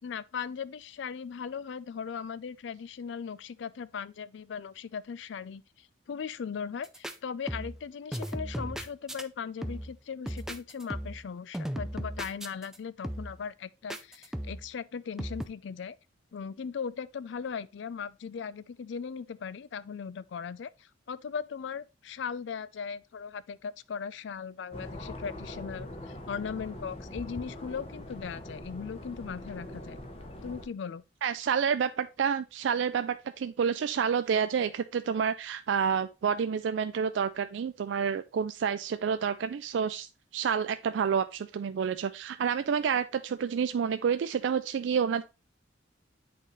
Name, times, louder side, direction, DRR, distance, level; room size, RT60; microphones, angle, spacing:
voice 1, 0.0-16.0 16.3-30.0 30.4-31.0, left 6 dB, 75° left, 0.4 m, -38 dB
sound 1, 6.8-7.1 7.5-9.2 9.6-10.0 10.3-11.3 11.5-12.8 13.0-13.4 13.9-14.7 15.2-15.5, equal, 5° right, 0.4 m, -36 dB
sound 2, 24.7-30.7, left 1 dB, 30° left, 0.9 m, -42 dB
voice 2, 31.2-45.2, right 7 dB, 80° right, 0.3 m, -29 dB
8.5 x 4.0 x 3.1 m
head